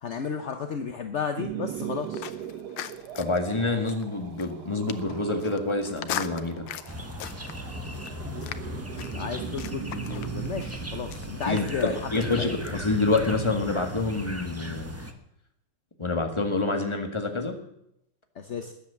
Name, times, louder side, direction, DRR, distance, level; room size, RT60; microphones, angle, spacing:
voice 1, 0.0-2.3 9.1-12.5 18.4-18.7, left 6 dB, 50° left, 7 dB, 0.8 m, -33 dB
sound 1, 1.4-13.5, right 10 dB, 65° right, 1.2 m, -40 dB
sound 2, 1.7-13.4, left 11 dB, 85° left, 1.7 m, -41 dB
voice 2, 3.1-6.7 11.5-14.9 16.0-17.6, left 3 dB, 15° left, 4 dB, 1.8 m, -27 dB
sound 3, 6.9-15.1, left 1 dB, 10° right, 0.8 m, -38 dB
20.5 x 8.4 x 7.0 m, 0.79 s
omnidirectional pair, 2.3 m